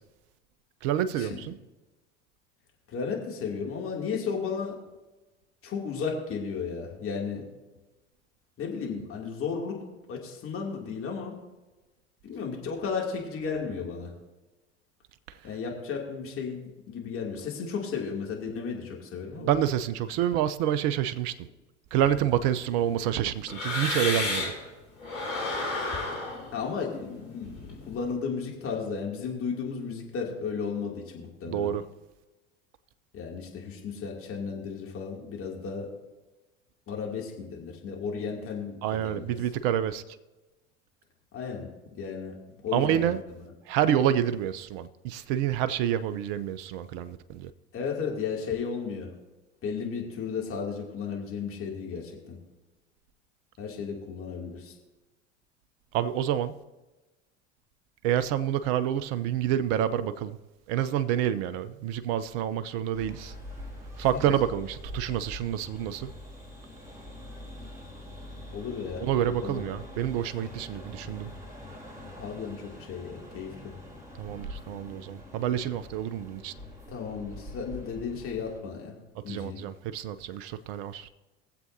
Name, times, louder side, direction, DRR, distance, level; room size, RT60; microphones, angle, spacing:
voice 1, 0.8-1.6 19.4-21.5 21.9-24.5 31.5-31.8 38.8-40.0 42.7-43.2 43.7-47.5 55.9-56.6 58.0-60.4 60.7-63.3 64.0-66.1 69.0-71.3 74.2-76.5 79.2-81.1, right 10 dB, 55° right, 0.7 m, -28 dB
voice 2, 2.9-4.8 5.6-7.4 8.6-9.8 10.1-11.4 12.2-14.1 15.4-19.6 26.5-31.7 33.1-35.9 36.9-39.3 41.3-41.7 42.0-42.4 42.6-43.1 47.7-49.1 49.6-52.4 53.6-54.7 64.1-64.2 68.5-69.0 69.4-69.6 72.2-73.7 76.9-79.0 79.2-79.6, left 5 dB, 35° left, 2.7 m, -34 dB
sound 1, 22.0-24.7 25.0-28.1, left 2 dB, 80° left, 3.9 m, -33 dB
sound 2, 62.9-78.6, left 1 dB, 10° right, 3.6 m, -44 dB
23.0 x 7.7 x 2.8 m
hypercardioid pair, 80°, 37 cm